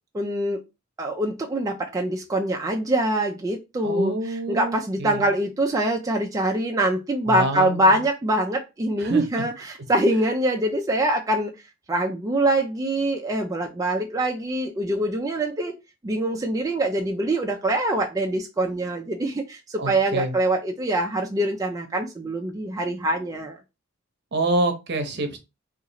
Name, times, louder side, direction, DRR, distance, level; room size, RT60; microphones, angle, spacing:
voice 1, 0.1-0.6 1.0-11.5 11.9-15.7 16.0-23.6, right 1 dB, 15° right, 2 dB, 0.4 m, -24 dB
voice 2, 3.8-5.3 7.3-8.0 9.0-9.2 19.8-20.3 24.3-25.4, right 2 dB, 55° right, 6 dB, 0.8 m, -27 dB
2.9 x 2.4 x 3.9 m, 0.25 s
head